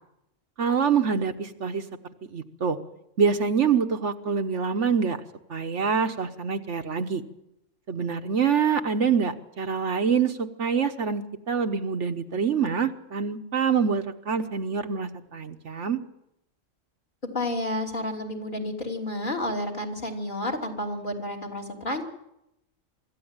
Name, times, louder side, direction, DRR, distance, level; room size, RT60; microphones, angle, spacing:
voice 1, 0.6-1.8 2.3-2.8 3.2-5.2 5.5-7.2 7.9-16.0, right 6 dB, 65° right, 7 dB, 1.4 m, -25 dB
voice 2, 17.3-22.0, left 1 dB, 40° left, 0 dB, 3.2 m, -30 dB
25.0 x 14.0 x 8.9 m, 0.84 s
omnidirectional pair, 1.3 m